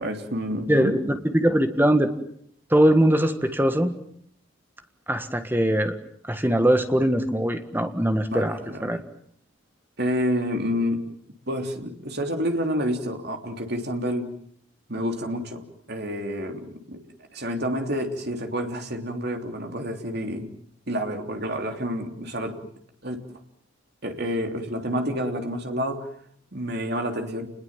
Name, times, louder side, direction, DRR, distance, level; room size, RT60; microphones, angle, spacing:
voice 1, 0.0-0.9 8.3-9.0 10.0-11.1 11.5-14.3 14.9-17.0 17.3-20.5 20.9-22.7 23.0-23.4 24.0-26.1 26.5-27.5, equal, 50° right, 4 dB, 3.3 m, -29 dB
voice 2, 0.7-2.1 2.7-3.9 5.1-5.9 6.3-9.0, right 1 dB, 10° right, 7 dB, 1.6 m, -21 dB
29.5 x 21.0 x 7.5 m, 0.65 s
head